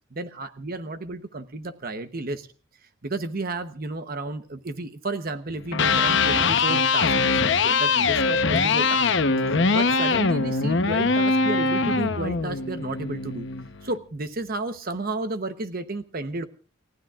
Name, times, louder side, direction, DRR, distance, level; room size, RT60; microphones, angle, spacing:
voice 1, 0.1-2.5 3.0-9.1 9.4-13.5 13.8-16.4, right 2 dB, 45° right, 9 dB, 1.0 m, -32 dB
Electric guitar, 5.6-13.7, left 4 dB, 60° left, 0.9 m, -22 dB
30.0 x 15.5 x 2.4 m, 0.38 s
head